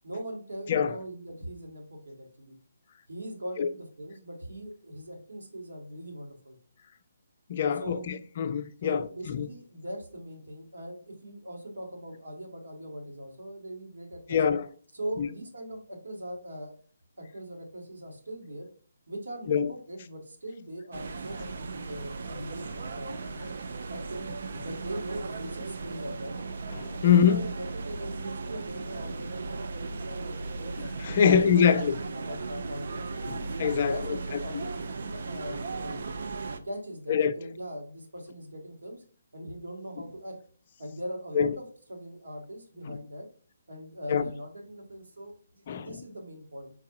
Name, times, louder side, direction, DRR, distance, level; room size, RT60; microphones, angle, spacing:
voice 1, 0.0-2.5 3.1-6.6 7.8-8.0 8.8-14.4 14.9-16.8 17.2-18.7 19.1-23.5 23.9-24.3 24.6-26.3 27.0-30.8 31.2-33.5 33.8-36.2 36.6-39.0 39.3-40.4 40.8-43.3 43.7-46.7, right 1 dB, 70° right, 1.7 m, -41 dB
voice 2, 7.5-9.5 14.3-14.7 15.2-15.3 19.5-19.7 26.7-27.5 31.0-31.9 33.3-34.0 37.1-37.3 41.3-41.5 42.9-43.0 44.1-44.2 45.7-45.9, left 7 dB, 40° left, 0.4 m, -24 dB
sound 1, 20.9-36.6, right 3 dB, 55° right, 0.5 m, -37 dB
4.7 x 4.6 x 2.5 m
figure-of-eight pair, 140°, 0 cm